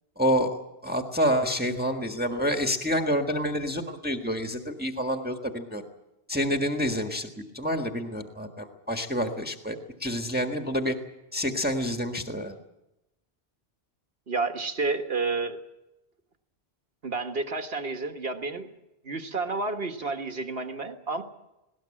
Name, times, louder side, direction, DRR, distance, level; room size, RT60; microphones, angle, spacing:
voice 1, 0.2-0.5 0.8-5.8 6.3-7.3 7.5-11.0 11.3-12.5, equal, 10° right, 4 dB, 1.6 m, -28 dB
voice 2, 14.3-15.6 17.0-18.7 19.0-21.2, right 3 dB, 65° right, 6 dB, 1.8 m, -30 dB
20.0 x 18.5 x 8.8 m, 0.94 s
omnidirectional pair, 1.1 m